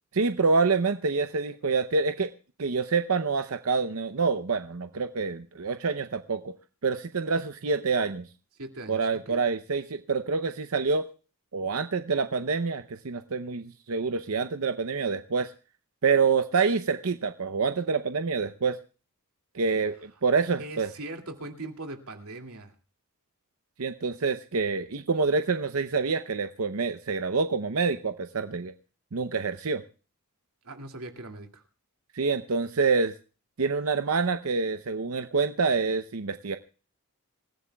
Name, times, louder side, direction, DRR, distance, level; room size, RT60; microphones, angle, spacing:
voice 1, 0.1-2.3 2.6-6.5 6.8-8.3 8.9-11.1 11.5-15.5 16.0-18.8 19.5-20.9 23.8-28.7 29.1-29.8 32.1-33.1 33.6-36.6, right 4 dB, 70° right, 0.7 m, -27 dB
voice 2, 8.6-9.4 20.6-22.7 30.6-31.6, right 2 dB, 85° right, 2.4 m, -40 dB
27.0 x 15.0 x 2.3 m
head